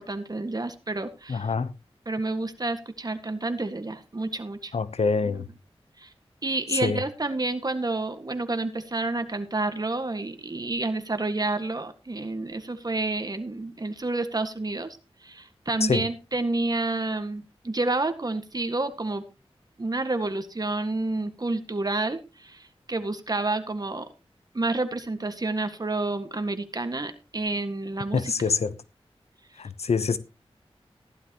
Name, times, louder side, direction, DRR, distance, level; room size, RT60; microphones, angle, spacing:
voice 1, 0.0-1.5 2.1-4.7 5.2-5.4 6.0-6.1 6.4-15.0 15.2-19.2 19.8-24.1 24.5-28.3, right 2 dB, 40° right, 1.8 m, -29 dB
voice 2, 1.3-1.7 4.7-5.5 6.8-7.0 15.8-16.0 28.1-28.7 29.6-30.2, left 5 dB, 90° left, 0.9 m, -25 dB
15.5 x 12.0 x 3.0 m
wide cardioid pair, 80°, 10 cm